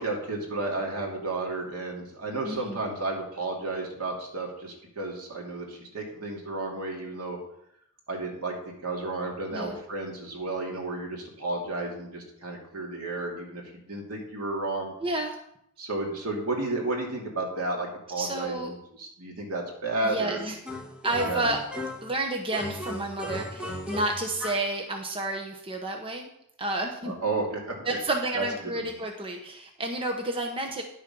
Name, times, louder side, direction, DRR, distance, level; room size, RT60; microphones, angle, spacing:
voice 1, 0.0-7.4 8.1-14.9 15.8-20.4 21.2-21.4 27.0-28.0 28.3-28.4, right 2 dB, 75° right, -1 dB, 2.7 m, -32 dB
voice 2, 2.4-2.8 9.5-9.8 15.0-15.4 18.2-18.7 20.0-20.6 21.0-21.6 22.0-26.3 26.6-27.1 27.8-30.8, right 2 dB, 25° right, 2 dB, 1.0 m, -30 dB
sound 1, 20.7-22.2 22.5-24.7, left 1 dB, 5° right, 1.5 m, -36 dB
11.0 x 6.8 x 5.4 m, 0.74 s
head